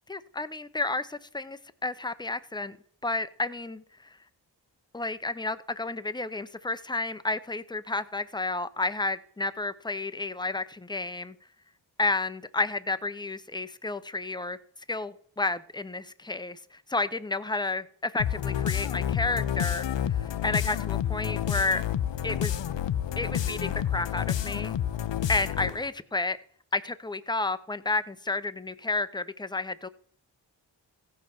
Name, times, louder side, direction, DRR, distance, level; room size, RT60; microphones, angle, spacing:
voice 1, 0.1-2.8 3.0-4.2 4.9-11.3 12.0-14.6 14.9-21.8 22.2-22.6 23.2-24.7 25.3-26.4 26.7-29.9, left 3 dB, 10° left, 13 dB, 0.7 m, -31 dB
sound 1, 18.2-25.9, left 10 dB, 75° left, 0.7 m, -29 dB
15.5 x 5.4 x 5.9 m, 0.64 s
cardioid pair, 55°, 45 cm